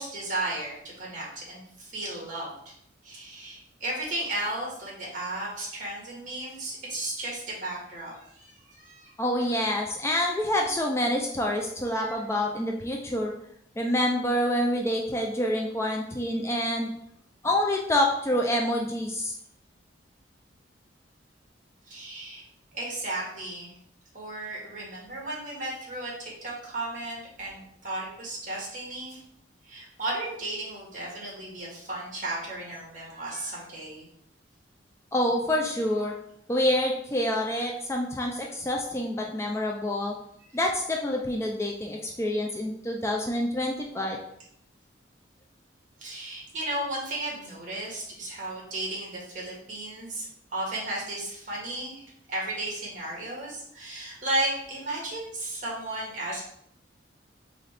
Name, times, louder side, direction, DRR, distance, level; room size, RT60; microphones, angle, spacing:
voice 1, 0.0-2.7 3.0-9.1 11.9-12.1 21.9-22.4 22.7-23.7 24.1-29.2 29.6-34.0 40.5-40.6 46.0-50.3 50.5-56.4, right 1 dB, 45° right, -4 dB, 1.7 m, -34 dB
voice 2, 9.2-13.3 13.8-16.9 17.4-19.3 35.1-36.1 36.5-40.2 40.5-44.2, left 1 dB, 15° left, 0 dB, 0.4 m, -27 dB
4.1 x 3.7 x 3.3 m, 0.72 s
head